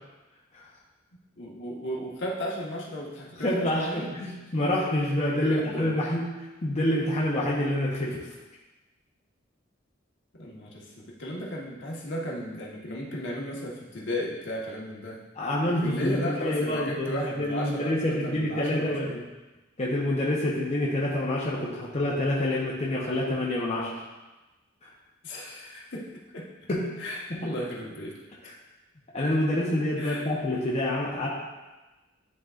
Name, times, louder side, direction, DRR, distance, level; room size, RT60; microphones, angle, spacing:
voice 1, 1.4-4.1 5.4-6.0 10.3-15.2 15.8-19.2 25.2-26.7 27.0-28.2 30.0-30.3, equal, 65° left, -3 dB, 1.3 m, -35 dB
voice 2, 3.4-6.3 6.6-8.2 15.4-19.1 19.8-23.9 24.8-24.9 26.7-27.0 27.3-27.5 29.1-31.3, left 1 dB, 35° left, -6 dB, 0.8 m, -27 dB
11.0 x 3.8 x 2.4 m, 1.1 s
head